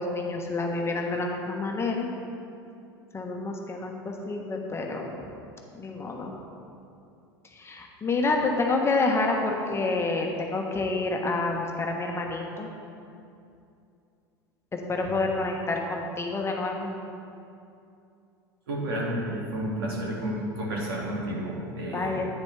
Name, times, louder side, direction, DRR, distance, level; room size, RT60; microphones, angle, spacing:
voice 1, 0.0-2.1 3.1-5.1 5.7-6.3 7.6-12.7 14.9-16.9 21.9-22.3, left 3 dB, 20° left, 1 dB, 1.2 m, -28 dB
voice 2, 18.7-22.2, right 1 dB, 70° right, -3 dB, 2.3 m, -31 dB
10.5 x 9.3 x 3.4 m, 2.6 s
hypercardioid pair, 80°, 13 cm